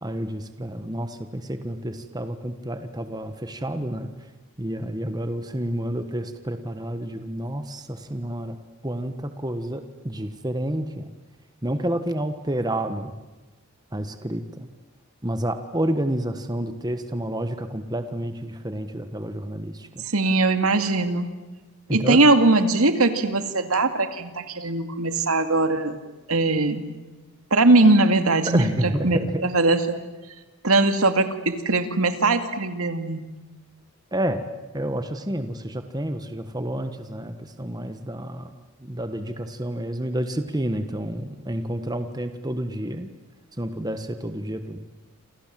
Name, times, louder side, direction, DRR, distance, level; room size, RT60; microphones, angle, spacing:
voice 1, 0.0-4.1 4.6-8.6 8.8-11.1 11.6-13.1 13.9-14.7 15.2-20.0 21.9-22.2 28.5-29.3 34.1-34.4 34.7-38.5 38.8-43.1 43.6-44.8, right 1 dB, 15° right, 8 dB, 1.4 m, -29 dB
voice 2, 20.0-21.3 21.9-26.0 26.3-26.9 27.5-28.7 29.0-30.0 30.6-33.3, right 2 dB, 75° right, 8 dB, 2.3 m, -20 dB
28.0 x 27.5 x 7.7 m, 1.2 s
head